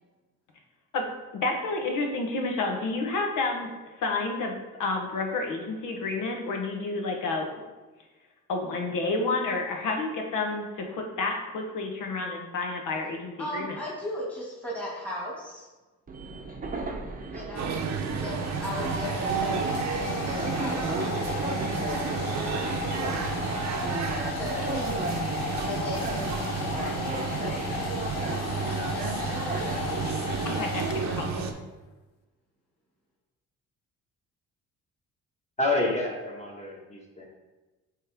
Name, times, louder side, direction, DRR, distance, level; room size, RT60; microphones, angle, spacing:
voice 1, 1.3-3.7 4.0-7.5 8.5-13.8 30.4-31.4, left 3 dB, 75° left, 2 dB, 1.2 m, -30 dB
voice 2, 13.4-15.7 17.3-17.7 18.2-22.3 24.3-24.8 25.6-27.0 28.7-29.8, left 1 dB, 5° left, -6 dB, 1.8 m, -38 dB
Train, 16.1-30.5, right 3 dB, 25° right, 0.7 m, -36 dB
sound 1, 17.6-31.5, right 5 dB, 60° right, 0.7 m, -31 dB
Domestic sounds home sounds, 17.8-31.5, left 8 dB, 90° left, 0.6 m, -36 dB
voice 3, 35.6-37.2, left 2 dB, 20° left, -2 dB, 1.5 m, -28 dB
8.3 x 3.2 x 3.5 m, 1.2 s
cardioid pair, 105°, 32 cm